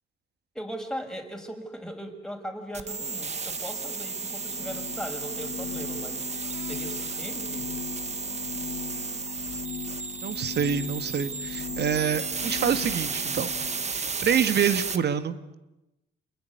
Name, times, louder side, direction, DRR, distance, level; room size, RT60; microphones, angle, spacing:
voice 1, 0.5-6.3 6.6-7.7, equal, 5° left, 4 dB, 5.9 m, -38 dB
sound 1, 2.7-15.0, right 5 dB, 35° right, 1.7 m, -33 dB
sound 2, 4.3-13.9, left 6 dB, 40° left, 3.4 m, -39 dB
voice 2, 10.2-13.5 13.9-15.6, right 8 dB, 55° right, 11 dB, 2.0 m, -27 dB
28.5 x 21.0 x 9.7 m, 0.97 s
cardioid pair, 90°, 20 cm